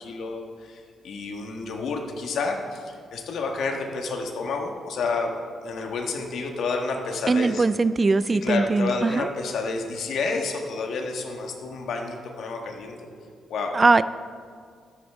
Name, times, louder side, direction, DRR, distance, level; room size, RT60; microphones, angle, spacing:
voice 1, 0.0-7.6 8.4-13.0 13.5-13.8, left 4 dB, 75° left, 2 dB, 1.4 m, -30 dB
voice 2, 7.3-9.3 13.7-14.0, right 3 dB, 30° right, 15 dB, 0.3 m, -20 dB
13.0 x 10.0 x 3.6 m, 2.1 s
cardioid pair, 85°, 0 cm